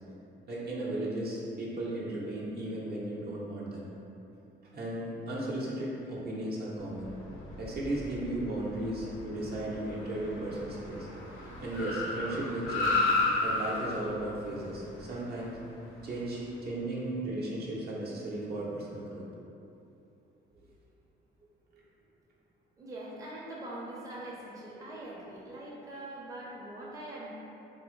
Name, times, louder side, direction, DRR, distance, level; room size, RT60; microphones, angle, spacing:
voice 1, 0.5-3.9 4.7-7.1 7.6-11.1 11.6-13.0 13.4-15.6 16.0-19.3 20.6-20.7 21.7-21.8, right 1 dB, 55° right, -5 dB, 0.7 m, -35 dB
Car, 6.9-16.4, left 2 dB, 85° left, 0.7 m, -34 dB
voice 2, 22.8-27.3, right 1 dB, 15° right, -6 dB, 0.6 m, -43 dB
3.4 x 2.0 x 3.1 m, 2.8 s
cardioid pair, 90°, 20 cm